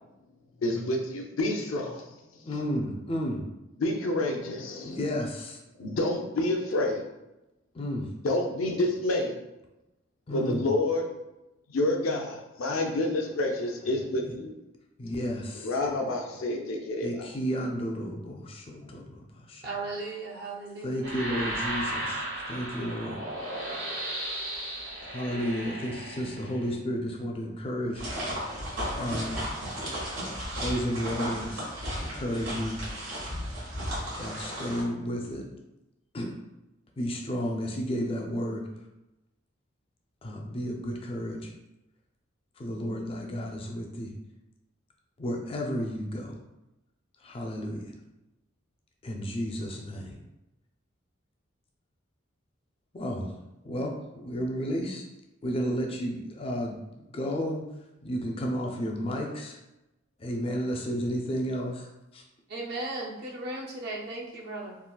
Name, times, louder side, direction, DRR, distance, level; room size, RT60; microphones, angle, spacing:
voice 1, 0.6-2.5 3.8-5.0 5.8-7.0 8.2-9.4 10.3-11.1 11.7-14.5 15.6-17.3 18.8-18.9, left 2 dB, 85° left, 1 dB, 0.5 m, -29 dB
voice 2, 2.4-3.5 4.8-5.6 7.7-8.1 10.3-10.7 14.2-14.4 15.0-15.7 17.0-19.7 20.8-23.2 25.0-28.1 28.9-29.4 30.6-32.8 33.9-35.5 36.1-36.4 37.0-38.7 40.2-41.5 42.6-44.1 45.2-46.4 47.2-47.9 49.0-50.2 52.9-53.4 53.6-55.0 55.4-56.8 57.1-57.7 58.0-59.6 60.2-62.2, equal, 25° left, 1 dB, 0.3 m, -32 dB
voice 3, 19.6-21.1 62.5-64.8, right 2 dB, 50° right, -2 dB, 0.5 m, -36 dB
sound 1, 21.0-26.7, right 1 dB, 70° right, 1.4 m, -35 dB
sound 2, 27.9-34.8, equal, 85° right, 1.4 m, -34 dB
3.7 x 2.3 x 2.2 m, 0.96 s
head